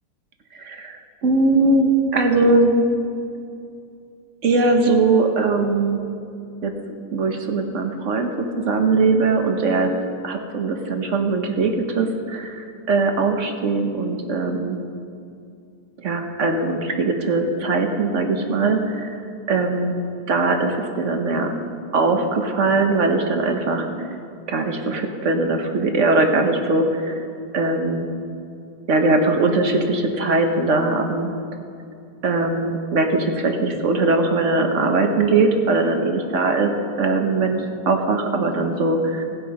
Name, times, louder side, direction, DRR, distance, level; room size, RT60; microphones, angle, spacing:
voice 1, 0.5-2.8 4.4-6.0 6.6-6.7 7.1-9.9 10.2-14.8 16.0-19.2 19.5-19.9 20.3-21.5 21.9-24.1 24.5-27.2 27.5-28.1 28.9-31.3 32.2-36.7 37.0-39.2, right 3 dB, 50° right, 5 dB, 1.2 m, -20 dB
18.0 x 7.8 x 5.3 m, 2.5 s
omnidirectional pair, 2.0 m